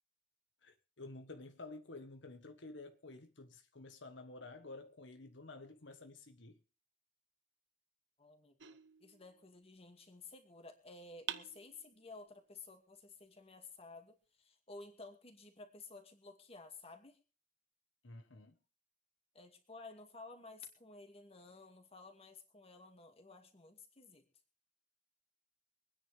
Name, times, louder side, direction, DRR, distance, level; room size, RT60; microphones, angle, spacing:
voice 1, 0.6-6.6 18.0-18.6, left 2 dB, 80° left, 1.4 m, -51 dB
voice 2, 8.2-17.2 19.3-24.2, left 3 dB, 35° left, 2.3 m, -54 dB
sound 1, 8.6-9.8 11.3-12.3, right 9 dB, 75° right, 0.9 m, -48 dB
25.0 x 9.8 x 3.5 m
head